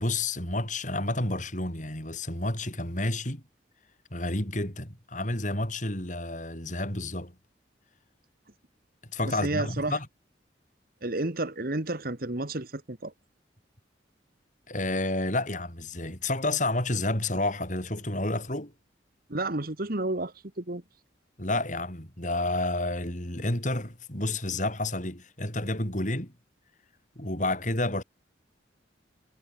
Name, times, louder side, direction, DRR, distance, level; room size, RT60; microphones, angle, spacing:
voice 1, 0.0-3.4 4.1-7.3 9.1-10.1 14.7-18.7 21.4-26.3 27.2-28.0, left 2 dB, 40° left, 7.3 m, -30 dB
voice 2, 9.2-10.0 11.0-13.1 19.3-20.8, right 2 dB, 50° right, 1.7 m, -31 dB
head